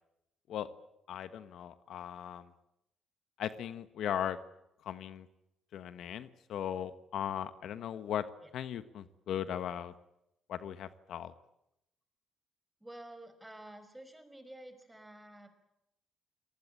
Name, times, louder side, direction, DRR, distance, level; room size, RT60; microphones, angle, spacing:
voice 1, 1.1-2.5 3.4-4.4 4.8-5.3 5.7-8.3 8.5-9.9 10.5-11.3, left 10 dB, 75° left, 12 dB, 1.3 m, -38 dB
voice 2, 12.8-15.5, right 1 dB, 10° right, 10 dB, 5.3 m, -50 dB
28.0 x 19.5 x 8.8 m, 0.83 s
cardioid pair, 90°, 0 cm